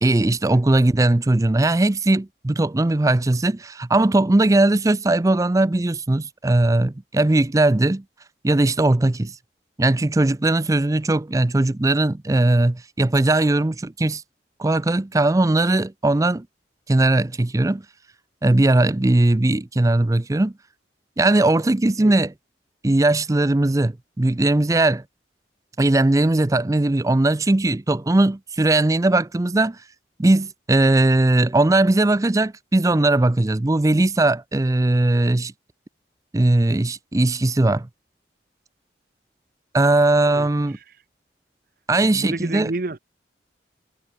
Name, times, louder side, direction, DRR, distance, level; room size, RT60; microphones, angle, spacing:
voice 1, 0.0-8.0 8.4-9.4 9.8-14.2 14.6-16.5 16.9-17.8 18.4-20.5 21.2-22.3 22.8-25.0 25.8-29.8 30.2-35.5 36.3-37.9 39.7-40.8 41.9-42.7, right 2 dB, 20° right, 0.5 m, -19 dB
voice 2, 42.1-43.0, right 2 dB, 50° right, 0.9 m, -29 dB
head